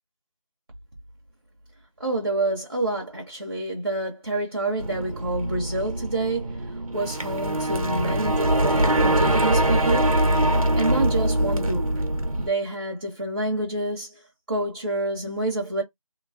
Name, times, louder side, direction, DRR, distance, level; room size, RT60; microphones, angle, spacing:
voice 1, 2.0-6.4 6.9-10.1 10.8-12.0 12.4-14.1 14.5-15.8, right 2 dB, 45° right, 1.1 m, -27 dB
sound 1, 4.8-12.5, right 1 dB, 75° right, 1.1 m, -23 dB
3.1 x 3.0 x 2.6 m
figure-of-eight pair, 175°, 18 cm